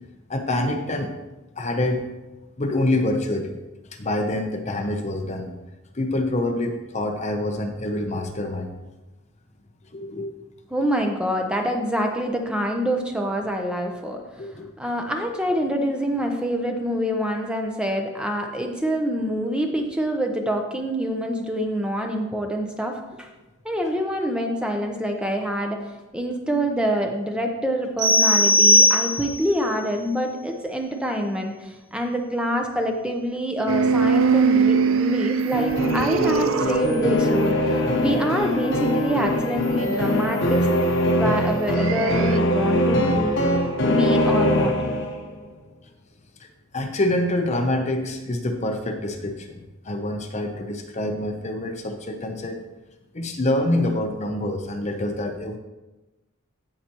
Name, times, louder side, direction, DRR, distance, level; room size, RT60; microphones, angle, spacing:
voice 1, 0.3-1.1 1.6-2.1 2.6-3.5 3.9-5.5 5.9-8.7 9.9-10.3 14.4-14.7 46.4-46.5 46.7-52.6 53.1-55.6, left 1 dB, 30° left, 5 dB, 0.7 m, -26 dB
voice 2, 10.7-14.2 14.8-23.3 23.6-25.8 26.1-40.7 41.1-43.4 43.9-44.8, equal, 5° right, 2 dB, 0.8 m, -26 dB
sound 1, 28.0-29.5, left 1 dB, 20° right, 2.5 m, -17 dB
sound 2, 33.7-38.1 41.8-42.4, right 5 dB, 70° right, 0.5 m, -22 dB
sound 3, 35.5-45.3, left 1 dB, 55° left, 1.1 m, -22 dB
16.0 x 5.9 x 3.0 m, 1.1 s
head